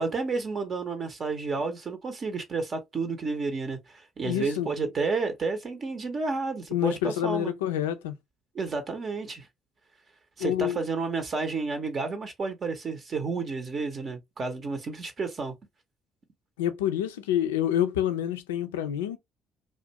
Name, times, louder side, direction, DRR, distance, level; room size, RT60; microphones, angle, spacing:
voice 1, 0.0-7.5 8.5-9.5 10.4-15.5, right 4 dB, 45° right, 0.6 m, -31 dB
voice 2, 4.2-4.9 6.7-8.2 10.4-10.8 16.6-19.2, left 11 dB, 85° left, 0.3 m, -27 dB
2.4 x 2.2 x 2.8 m
hypercardioid pair, 50°, 0 cm